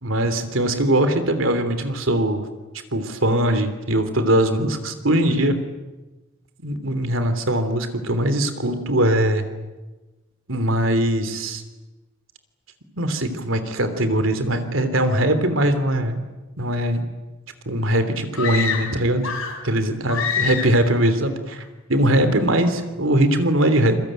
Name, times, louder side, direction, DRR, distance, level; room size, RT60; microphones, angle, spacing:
voice 1, 0.0-2.5 2.9-5.6 6.6-9.4 10.5-11.6 12.9-16.2 16.6-17.0 17.6-19.3 19.6-24.0, right 1 dB, 70° right, 9 dB, 3.2 m, -21 dB
sound 1, 18.3-19.7 20.1-20.9, left 6 dB, 85° left, 6.1 m, -26 dB
28.0 x 21.5 x 9.1 m, 1.2 s
head